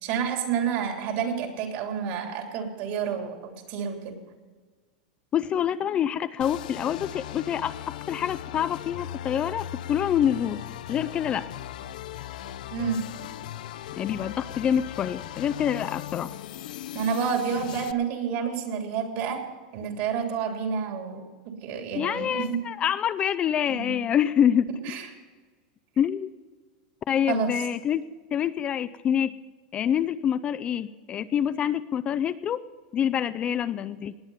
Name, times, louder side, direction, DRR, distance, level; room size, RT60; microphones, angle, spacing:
voice 1, 0.0-4.2 12.7-13.0 16.9-19.4 19.7-21.2 21.6-22.6 23.7-23.9 24.8-25.1 27.3-27.5, right 7 dB, 55° right, 3 dB, 3.1 m, -29 dB
voice 2, 5.3-7.7 8.1-10.6 10.9-11.5 14.0-16.3 21.9-24.7 26.0-26.3 27.1-28.0 28.3-29.3 29.7-32.6 32.9-34.1, left 9 dB, 25° left, 14 dB, 0.4 m, -26 dB
sound 1, 6.4-17.9, left 12 dB, 80° left, 0.6 m, -38 dB
19.0 x 8.9 x 5.7 m, 1.4 s
supercardioid pair, 145°, 4 cm